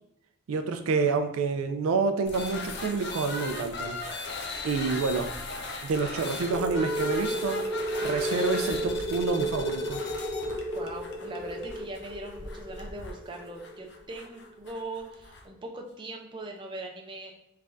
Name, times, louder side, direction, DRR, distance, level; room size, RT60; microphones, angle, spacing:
voice 1, 0.5-4.0 4.6-5.3 5.8-7.6 8.0-10.0, right 4 dB, 85° right, 7 dB, 0.4 m, -28 dB
sound 1, 2.2-15.5, left 3 dB, 55° left, 0.5 m, -38 dB
sound 2, 6.5-14.8, equal, 30° left, 1.3 m, -34 dB
voice 2, 10.7-17.3, right 2 dB, 25° right, 1 dB, 0.4 m, -40 dB
3.4 x 3.2 x 2.5 m, 0.81 s
head